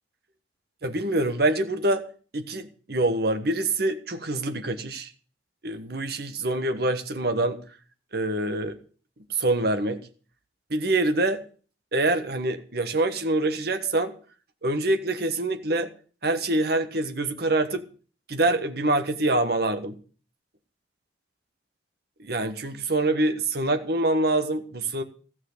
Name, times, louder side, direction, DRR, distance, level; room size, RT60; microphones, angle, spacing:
voice 1, 0.8-2.0 2.3-5.1 5.6-7.6 8.1-8.8 9.3-10.0 10.7-11.4 11.9-14.1 14.6-15.9 16.2-17.8 18.3-20.0 22.2-25.0, right 2 dB, 60° right, 8 dB, 1.4 m, -25 dB
14.5 x 6.3 x 7.9 m, 0.41 s
head